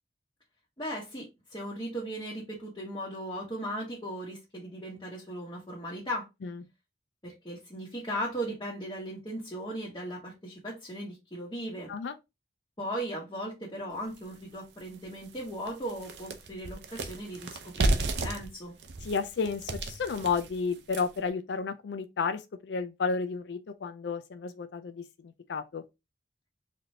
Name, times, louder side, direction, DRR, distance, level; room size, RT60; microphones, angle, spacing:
voice 1, 0.8-6.3 7.2-11.9 12.8-18.8, equal, 25° left, 1.2 m, -37 dB
sound 1, 14.2-14.3 14.8-14.9 15.2-21.3, right 2 dB, 80° right, 0.7 m, -33 dB
voice 2, 19.0-25.0 25.5-25.8, left 5 dB, 80° left, 0.4 m, -32 dB
4.1 x 3.3 x 2.7 m
head